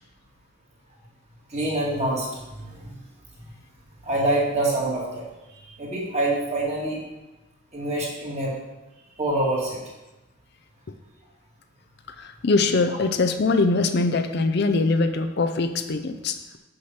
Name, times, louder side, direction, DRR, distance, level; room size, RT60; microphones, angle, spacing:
voice 1, 1.5-3.0 4.0-5.2 5.6-7.0 7.7-8.5 9.2-9.8, right 1 dB, 35° right, -4 dB, 2.2 m, -26 dB
voice 2, 12.2-16.6, left 3 dB, 60° left, 8 dB, 0.5 m, -22 dB
6.3 x 5.8 x 5.7 m, 1.0 s
head